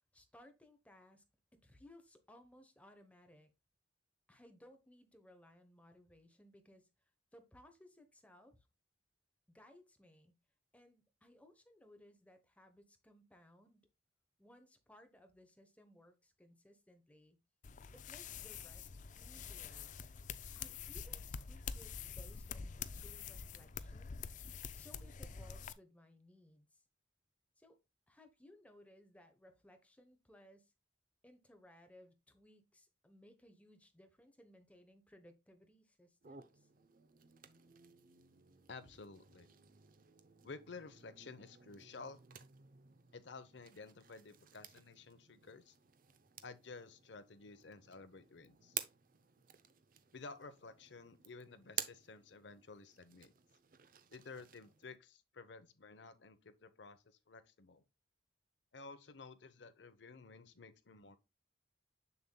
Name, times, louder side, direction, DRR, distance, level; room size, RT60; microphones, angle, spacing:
voice 1, 0.1-1.2 1.6-3.5 4.3-6.9 7.3-8.6 9.5-10.3 10.7-13.9 14.4-17.4 17.9-18.9 19.2-19.9 20.6-24.2 24.8-26.8 27.6-27.8 28.1-30.7 31.2-36.7, left 1 dB, 5° left, 1.0 m, -62 dB
sound 1, 17.6-25.7, left 6 dB, 45° left, 0.4 m, -46 dB
sound 2, 36.2-55.0, right 10 dB, 50° right, 0.6 m, -52 dB
voice 2, 38.7-39.5 40.4-42.2 43.1-45.8 46.4-48.8 50.1-53.3 54.1-57.8 58.7-61.2, left 4 dB, 70° left, 0.8 m, -53 dB
7.0 x 6.8 x 2.2 m
head